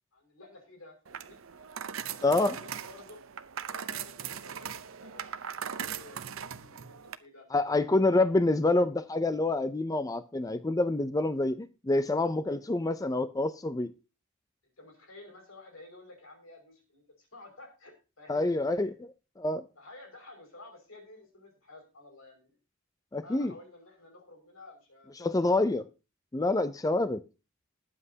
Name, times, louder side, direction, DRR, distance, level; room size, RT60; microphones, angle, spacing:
voice 1, 0.1-1.4 2.0-3.2 3.7-7.5 14.8-18.9 19.8-22.6 23.2-25.6, left 2 dB, 80° left, 3 dB, 5.6 m, -52 dB
sound 1, 1.0-7.2, right 8 dB, 75° right, 0.7 m, -39 dB
voice 2, 2.2-2.5 7.5-13.9 18.3-19.6 23.1-23.5 25.2-25.9 26.3-27.2, left 2 dB, 15° left, 11 dB, 0.4 m, -27 dB
20.5 x 7.6 x 2.8 m, 0.30 s
head